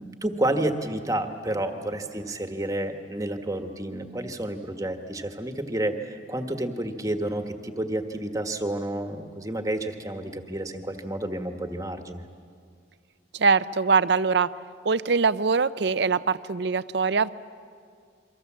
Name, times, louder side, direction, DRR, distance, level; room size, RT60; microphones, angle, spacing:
voice 1, 0.0-12.2, right 1 dB, 20° right, 6 dB, 1.4 m, -30 dB
voice 2, 13.3-14.5 14.8-17.3, right 5 dB, 65° right, 15 dB, 0.6 m, -22 dB
28.5 x 24.0 x 7.4 m, 2.2 s
head